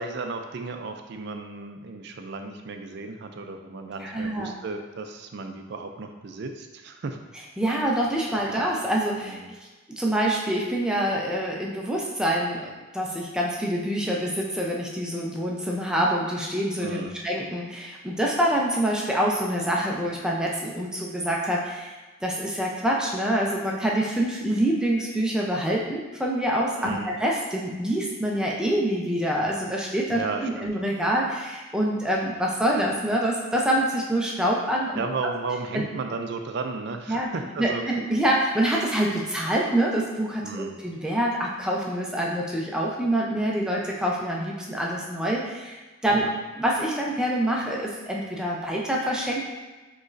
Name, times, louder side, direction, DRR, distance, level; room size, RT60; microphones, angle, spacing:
voice 1, 0.0-7.2 9.2-9.5 16.8-17.1 26.8-27.1 30.1-30.7 35.0-37.8 40.4-40.8 46.1-46.3, right 4 dB, 55° right, 6 dB, 0.4 m, -34 dB
voice 2, 4.0-4.5 7.6-9.4 10.0-21.9 22.2-35.0 35.7-35.8 37.1-37.3 37.6-46.3 46.6-49.5, right 1 dB, 5° right, -3 dB, 0.5 m, -26 dB
6.2 x 3.1 x 2.5 m, 1.2 s
head